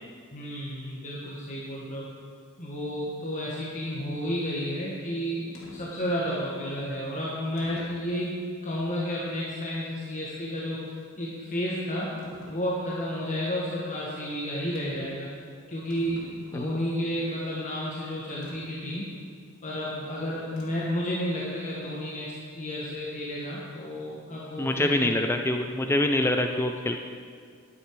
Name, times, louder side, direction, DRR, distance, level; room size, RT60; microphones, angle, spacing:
voice 1, 0.3-2.0 2.6-10.8 11.2-12.1 12.5-15.3 15.7-19.2 19.6-22.3 22.5-25.1, equal, 35° left, -6 dB, 1.4 m, -31 dB
sound 1, 5.5-5.8 6.7-6.8 7.6-8.1 8.7-8.8 12.2-12.6 14.7-15.1 15.4-15.5 15.7-16.8 18.4-18.6 20.6-21.0, equal, 85° left, 2.7 m, -45 dB
voice 2, 24.6-27.0, left 1 dB, 10° left, 4 dB, 0.4 m, -25 dB
10.5 x 9.7 x 4.7 m, 2.1 s
head